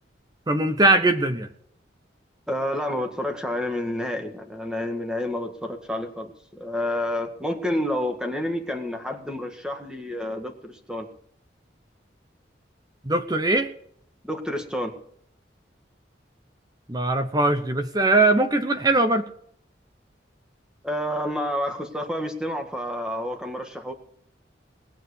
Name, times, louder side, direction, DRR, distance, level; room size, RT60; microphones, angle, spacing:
voice 1, 0.5-1.5 13.1-13.7 16.9-19.3, right 2 dB, 20° right, 8 dB, 0.9 m, -21 dB
voice 2, 2.5-11.1 14.2-14.9 20.8-23.9, left 1 dB, 5° right, 5 dB, 1.8 m, -29 dB
20.0 x 7.4 x 8.5 m, 0.65 s
head